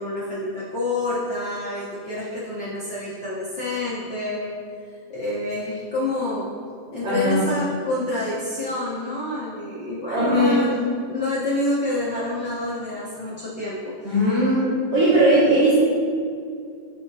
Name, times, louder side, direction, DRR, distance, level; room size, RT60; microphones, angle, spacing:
voice 1, 0.0-4.5 5.1-6.5 6.9-13.9, left 2 dB, 60° left, -8 dB, 1.2 m, -28 dB
voice 2, 7.0-7.4 10.1-10.6 14.0-15.8, right 1 dB, 55° right, -14 dB, 3.0 m, -19 dB
13.0 x 4.8 x 2.8 m, 2.3 s
omnidirectional pair, 3.4 m